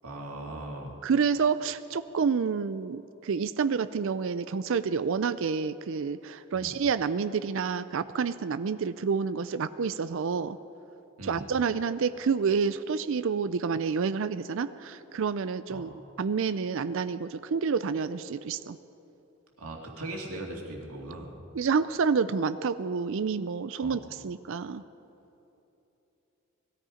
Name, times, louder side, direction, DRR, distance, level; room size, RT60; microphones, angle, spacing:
voice 1, 0.0-1.0 6.5-6.7 11.2-11.4 15.7-15.9 19.6-21.3 23.8-24.0, right 1 dB, 85° right, 0 dB, 2.3 m, -39 dB
voice 2, 1.0-10.6 11.2-15.9 16.2-18.8 21.5-24.8, right 5 dB, 60° right, 13 dB, 0.4 m, -28 dB
20.0 x 14.0 x 5.0 m, 2.9 s
head